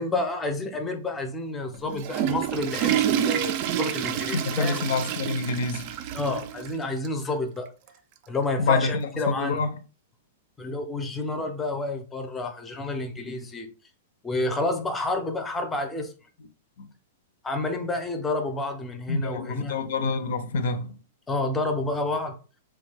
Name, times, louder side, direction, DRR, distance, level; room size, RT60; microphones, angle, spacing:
voice 1, 0.0-4.8 6.1-7.7 8.3-9.6 10.6-13.7 14.2-16.1 17.4-19.7 21.3-22.4, left 2 dB, 10° left, 0.5 m, -29 dB
Water / Toilet flush, 1.7-6.7 7.0-7.1 7.9-8.0 9.3-9.4, right 11 dB, 45° right, 0.3 m, -28 dB
voice 2, 4.3-5.9 8.6-9.7 16.8-16.9 19.1-21.0, left 4 dB, 70° left, 0.5 m, -27 dB
3.2 x 2.2 x 3.3 m
hypercardioid pair, 145°, 0 cm